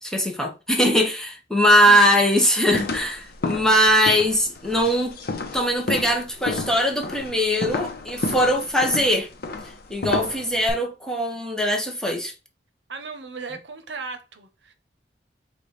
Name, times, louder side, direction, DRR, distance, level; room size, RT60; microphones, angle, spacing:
voice 1, 0.0-5.2 5.5-9.3 9.9-12.3, equal, 5° left, 0.7 m, -21 dB
voice 2, 1.6-2.0 12.9-14.7, right 4 dB, 75° right, 0.7 m, -37 dB
sound 1, 2.7-10.7, left 3 dB, 60° left, 0.7 m, -31 dB
4.9 x 2.3 x 4.0 m
head